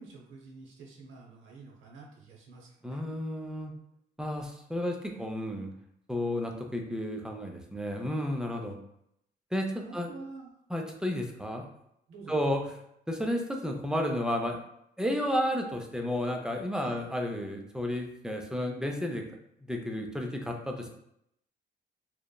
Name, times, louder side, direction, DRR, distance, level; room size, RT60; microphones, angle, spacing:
voice 1, 0.0-3.0 9.8-10.5 12.1-12.5 16.8-17.0, right 3 dB, 80° right, -1 dB, 0.8 m, -48 dB
voice 2, 2.8-3.7 4.2-5.7 6.1-8.8 9.5-10.1 10.7-11.6 12.3-12.6 13.1-14.6 15.0-19.2 19.7-20.9, equal, 5° right, 2 dB, 0.4 m, -32 dB
2.9 x 2.1 x 2.2 m, 0.76 s
cardioid pair, 90°, 20 cm